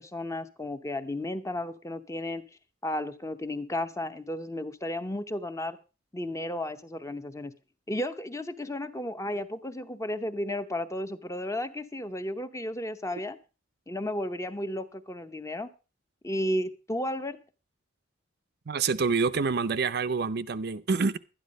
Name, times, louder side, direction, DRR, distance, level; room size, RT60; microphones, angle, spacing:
voice 1, 0.0-2.4 2.8-5.8 6.1-7.5 7.9-13.4 13.9-15.7 16.2-17.4, left 1 dB, 15° left, 0.7 m, -33 dB
voice 2, 18.7-21.2, right 4 dB, 50° right, 0.5 m, -27 dB
12.0 x 10.5 x 5.2 m
head